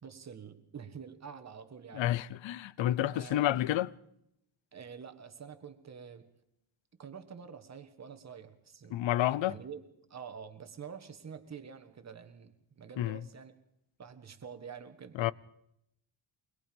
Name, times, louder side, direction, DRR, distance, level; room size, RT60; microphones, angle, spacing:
voice 1, 0.0-2.1 3.1-3.6 4.7-6.3 7.0-9.0 9.4-9.8 10.1-13.5 14.0-15.3, right 7 dB, 35° right, 1.6 m, -47 dB
voice 2, 1.9-3.9 8.9-9.6 13.0-13.2 15.2-15.3, left 13 dB, 65° left, 0.7 m, -29 dB
24.0 x 21.0 x 5.3 m
wide cardioid pair, 175°, 48 cm